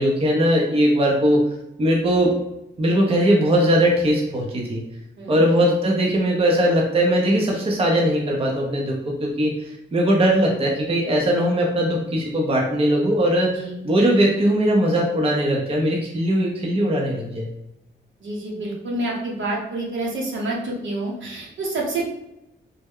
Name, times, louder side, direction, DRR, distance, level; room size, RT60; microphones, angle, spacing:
voice 1, 0.0-1.4 1.8-2.3 2.8-4.8 5.3-13.5 13.8-17.5, equal, 30° right, -1 dB, 0.5 m, -20 dB
voice 2, 18.2-22.0, right 2 dB, 75° right, -3 dB, 1.0 m, -28 dB
3.1 x 2.1 x 3.5 m, 0.86 s
wide cardioid pair, 135°, 20 cm